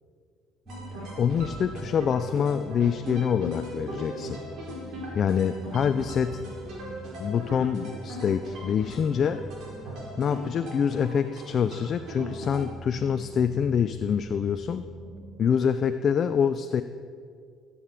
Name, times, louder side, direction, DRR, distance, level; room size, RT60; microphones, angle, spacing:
sound 1, 0.7-15.3, right 2 dB, 25° right, 4.3 m, -44 dB
sound 2, 0.7-12.7, equal, 65° right, 4.6 m, -40 dB
voice 1, 1.2-4.4 5.1-6.4 7.2-9.5 10.2-14.8 15.4-16.8, left 7 dB, 40° left, 10 dB, 0.4 m, -26 dB
sound 3, 2.7-6.9, left 1 dB, 15° left, 2.1 m, -52 dB
16.0 x 8.5 x 7.3 m, 2.1 s
cardioid pair, 145°, 0 cm